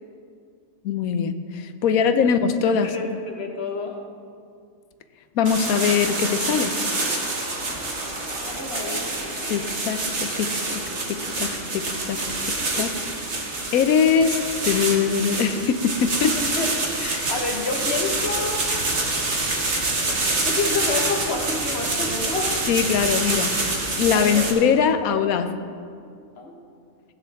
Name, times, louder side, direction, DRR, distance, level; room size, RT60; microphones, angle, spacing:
voice 1, 0.8-3.0 5.4-6.8 9.5-10.8 11.1-12.9 13.7-14.4 14.6-16.4 17.0-17.3 22.7-23.6 24.0-25.5, left 7 dB, 85° left, 10 dB, 1.1 m, -22 dB
voice 2, 1.9-2.3 2.8-4.0 8.4-9.1 9.4-9.6 12.8-12.9 16.4-16.7 17.0-18.7 20.4-22.6 24.1-24.5 26.4-26.6, left 3 dB, 50° left, 2 dB, 1.5 m, -29 dB
sound 1, 5.4-24.5, right 2 dB, 55° right, 1.7 m, -26 dB
16.0 x 10.0 x 3.5 m, 2.3 s
omnidirectional pair, 1.5 m